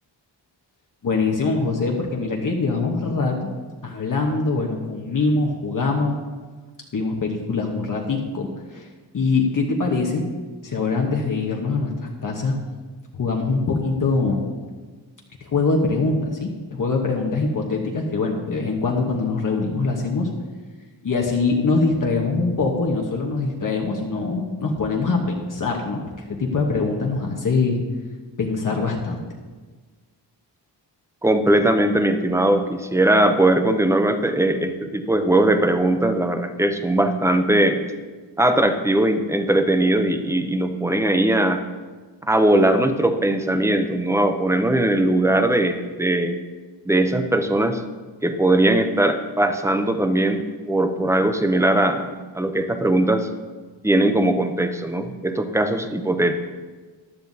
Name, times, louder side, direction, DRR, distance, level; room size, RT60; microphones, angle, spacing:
voice 1, 1.0-3.5 3.8-6.2 6.9-8.9 9.1-10.3 10.6-12.6 13.1-14.4 15.4-20.3 21.0-26.0 26.3-27.8 28.4-29.2, left 3 dB, 45° left, 0 dB, 1.1 m, -23 dB
voice 2, 31.2-37.8 38.4-41.6 42.3-46.4 46.9-47.8 48.2-52.1 52.3-53.3 53.8-56.4, right 1 dB, 5° right, 7 dB, 0.5 m, -20 dB
14.5 x 11.5 x 2.7 m, 1.4 s
wide cardioid pair, 180°, 45 cm